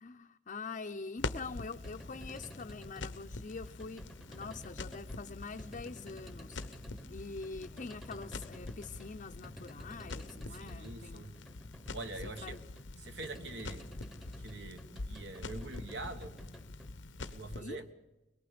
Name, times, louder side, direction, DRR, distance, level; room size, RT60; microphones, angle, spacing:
voice 1, 0.0-6.6 7.1-11.3 12.4-12.6 13.4-13.6 17.6-17.8, left 4 dB, 45° left, 0.6 m, -45 dB
Crackle, 1.2-17.6, left 3 dB, 85° left, 0.9 m, -45 dB
sound 1, 1.8-17.8, equal, ahead, 0.9 m, -52 dB
Human voice, 3.6-11.0 11.6-13.0, equal, 40° right, 6.2 m, -66 dB
voice 2, 10.6-11.4 11.9-12.6 13.0-13.9 14.4-16.4 17.2-17.9, right 2 dB, 70° right, 1.5 m, -44 dB
23.5 x 22.0 x 5.1 m
head